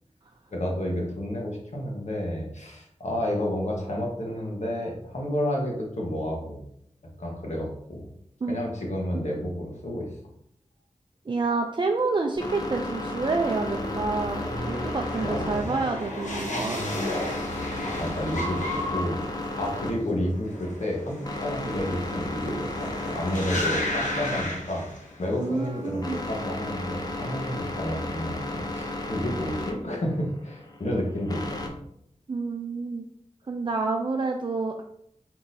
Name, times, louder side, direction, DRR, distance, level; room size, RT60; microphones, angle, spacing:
voice 1, 0.5-6.6 7.2-8.1 8.5-10.1 15.2-15.7 18.0-24.9 25.2-31.7, left 1 dB, 70° left, -1 dB, 1.3 m, -30 dB
voice 2, 11.3-16.8 25.4-26.2 32.3-33.0 33.5-34.8, right 3 dB, 40° right, 3 dB, 0.4 m, -28 dB
sound 1, 11.8-31.7, left 2 dB, 30° left, 0.7 m, -35 dB
sound 2, 12.3-25.4 25.7-26.3, left 1 dB, 90° left, 0.9 m, -34 dB
4.6 x 3.8 x 2.7 m, 0.73 s
wide cardioid pair, 50°, 12 cm